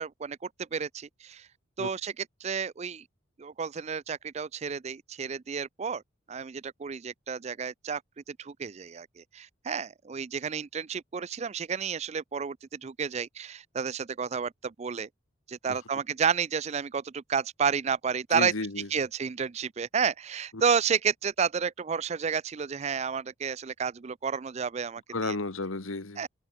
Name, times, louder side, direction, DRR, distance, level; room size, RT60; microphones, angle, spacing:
voice 1, 0.0-1.5 1.8-2.1 2.4-3.0 3.4-6.0 6.3-8.0 8.3-15.1 15.5-18.5 18.9-25.4 26.2-26.3, right 6 dB, 30° right, 0.4 m, -31 dB
voice 2, 18.3-18.9 20.5-20.6 25.1-26.3, left 3 dB, 75° left, 1.6 m, -33 dB
head